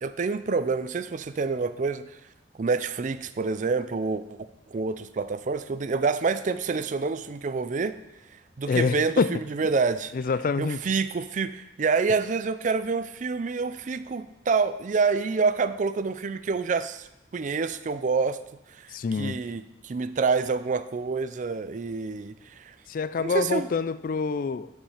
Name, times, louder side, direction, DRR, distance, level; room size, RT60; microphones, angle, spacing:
voice 1, 0.0-2.1 2.6-4.4 4.7-8.0 8.6-10.1 10.6-17.1 17.3-18.4 18.8-22.7 23.2-23.7, right 4 dB, 45° right, 13 dB, 0.4 m, -27 dB
voice 2, 8.7-9.3 10.1-10.8 18.9-19.4 22.9-24.7, left 4 dB, 50° left, 14 dB, 0.4 m, -26 dB
10.5 x 5.4 x 4.9 m, 0.91 s
head